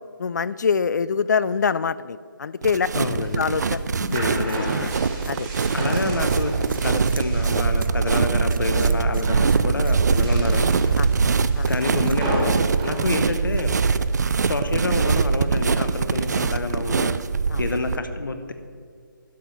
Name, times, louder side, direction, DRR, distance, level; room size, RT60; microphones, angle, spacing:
voice 1, 0.2-2.9 3.4-3.9 5.3-5.5 11.0-11.1 11.5-11.7 17.5-17.6, left 6 dB, 55° left, 17 dB, 0.4 m, -24 dB
sound 1, 2.6-18.0, right 5 dB, 50° right, 0.4 m, -22 dB
voice 2, 2.9-3.5 4.0-4.9 5.7-6.5 6.8-10.7 11.7-13.7 14.4-17.2 17.6-18.5, left 3 dB, 70° left, 8 dB, 1.0 m, -28 dB
sound 2, 3.2-7.9 8.3-8.8 9.1-9.6 10.1-14.0, right 1 dB, 15° right, 1.6 m, -34 dB
sound 3, 4.1-16.1, right 3 dB, 75° right, 0.8 m, -44 dB
12.0 x 5.2 x 5.9 m, 2.1 s
figure-of-eight pair, 160°, 11 cm